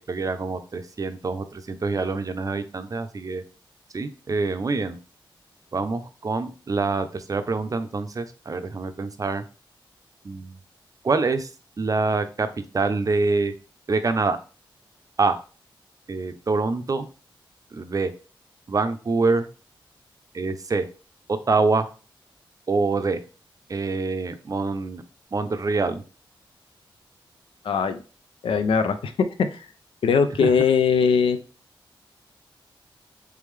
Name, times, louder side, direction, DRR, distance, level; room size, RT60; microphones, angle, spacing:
voice 1, 0.0-3.4 3.9-5.0 5.7-9.4 10.2-10.6 11.0-11.5 11.8-12.5 12.7-13.5 13.9-14.4 15.2-15.4 16.1-17.1 17.7-18.1 18.7-19.5 20.3-20.8 21.3-21.9 22.7-23.2 23.7-25.0 25.3-26.0 30.4-30.5, right 3 dB, 40° right, 9 dB, 0.5 m, -25 dB
voice 2, 27.6-28.0 28.4-29.1 29.5-29.6 30.0-31.4, left 6 dB, 90° left, 9 dB, 0.4 m, -20 dB
3.5 x 3.3 x 3.2 m, 0.35 s
cardioid pair, 70°, 9 cm